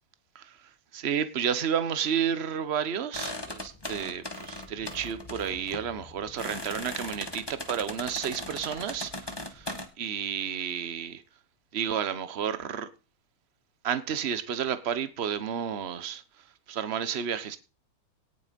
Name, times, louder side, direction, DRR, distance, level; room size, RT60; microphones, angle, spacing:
voice 1, 0.9-9.7 10.0-11.2 11.7-12.9 13.8-16.2 16.7-17.6, right 8 dB, 40° right, 1.0 m, -31 dB
sound 1, 3.1-9.9, left 1 dB, 10° left, 1.7 m, -39 dB
18.0 x 6.8 x 5.3 m
omnidirectional pair, 2.4 m